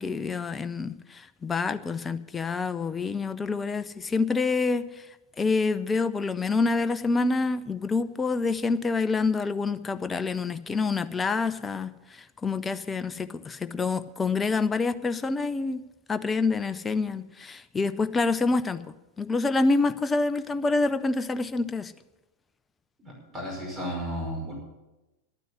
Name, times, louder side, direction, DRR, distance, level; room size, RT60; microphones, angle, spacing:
voice 1, 0.0-4.8 5.4-11.9 12.4-15.8 16.1-18.8 19.2-21.9, left 3 dB, 15° left, 13 dB, 0.6 m, -27 dB
voice 2, 23.0-24.5, equal, 15° right, -2 dB, 5.5 m, -34 dB
11.0 x 9.2 x 8.0 m, 1.0 s
figure-of-eight pair, 90°, 0 cm